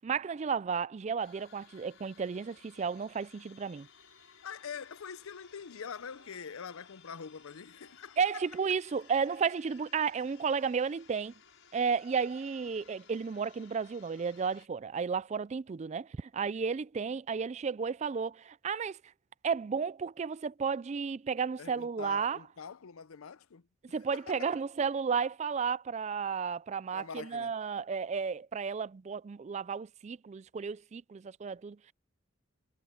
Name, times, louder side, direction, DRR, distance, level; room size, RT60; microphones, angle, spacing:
voice 1, 0.0-3.9 8.2-11.3 11.7-19.0 19.4-22.4 23.9-31.9, right 6 dB, 35° right, 0.3 m, -33 dB
sound 1, 1.2-14.7, left 7 dB, 70° left, 6.5 m, -59 dB
voice 2, 4.4-8.4 21.6-24.6 26.9-27.6, left 6 dB, 90° left, 0.6 m, -45 dB
Shout, 5.1-10.3, right 4 dB, 70° right, 3.0 m, -68 dB
head